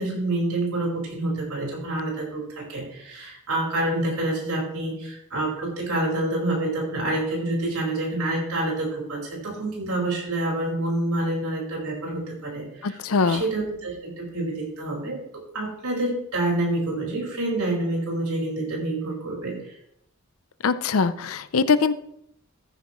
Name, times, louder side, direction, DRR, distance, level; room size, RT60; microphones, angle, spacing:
voice 1, 0.0-13.0 13.2-19.8, right 2 dB, 90° right, -2 dB, 4.9 m, -27 dB
voice 2, 12.8-13.4 20.6-21.9, left 4 dB, 70° left, 14 dB, 0.6 m, -22 dB
14.5 x 9.3 x 3.1 m, 0.76 s
head